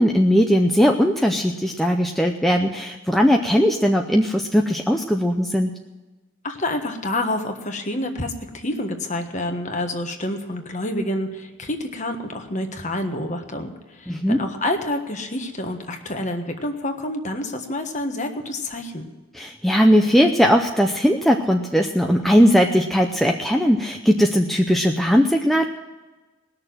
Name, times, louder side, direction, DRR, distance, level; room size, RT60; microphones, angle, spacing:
voice 1, 0.0-5.7 14.1-14.4 19.3-25.7, equal, ahead, 2 dB, 0.6 m, -18 dB
voice 2, 6.4-19.1, left 1 dB, 35° left, 5 dB, 1.4 m, -28 dB
19.5 x 6.6 x 7.7 m, 1.2 s
head